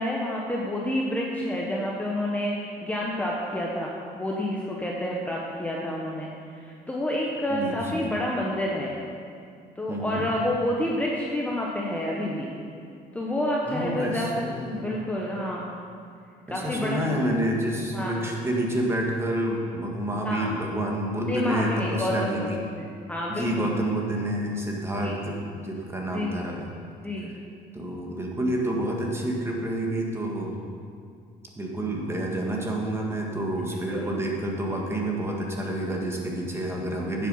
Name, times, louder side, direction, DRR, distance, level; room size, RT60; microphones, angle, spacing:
voice 1, 0.0-8.9 9.8-12.5 13.1-15.7 16.5-17.0 17.9-18.2 20.2-20.5 21.3-23.8 25.0-25.2 26.1-26.4 27.0-27.3 33.7-34.1, left 1 dB, 10° left, -3 dB, 1.2 m, -29 dB
voice 2, 7.5-8.1 9.9-10.3 13.7-14.9 16.5-22.6 23.3-25.3 25.6-26.7 27.7-30.6 31.6-37.3, right 1 dB, 15° right, -1 dB, 1.8 m, -29 dB
9.6 x 7.9 x 5.6 m, 2.3 s
cardioid pair, 110°, 17 cm